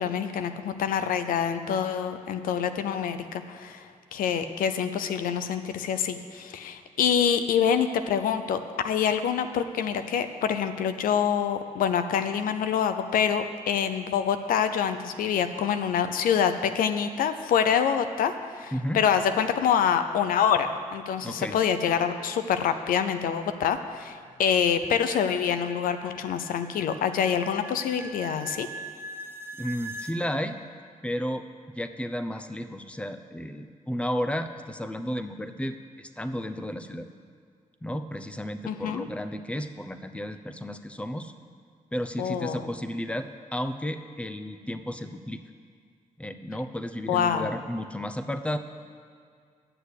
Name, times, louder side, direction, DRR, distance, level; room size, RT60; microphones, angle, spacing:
voice 1, 0.0-28.7 38.6-39.1 42.2-42.7 47.1-47.5, left 8 dB, 90° left, 9 dB, 0.6 m, -26 dB
voice 2, 18.7-19.0 21.2-21.6 29.6-30.6 31.0-31.4 31.7-37.1 37.8-41.3 41.9-45.4 46.2-48.6, equal, 10° left, 9 dB, 0.8 m, -33 dB
sound 1, 23.5-30.2, right 2 dB, 15° right, 1.1 m, -43 dB
9.9 x 6.8 x 8.3 m, 2.1 s
cardioid pair, 60°, 14 cm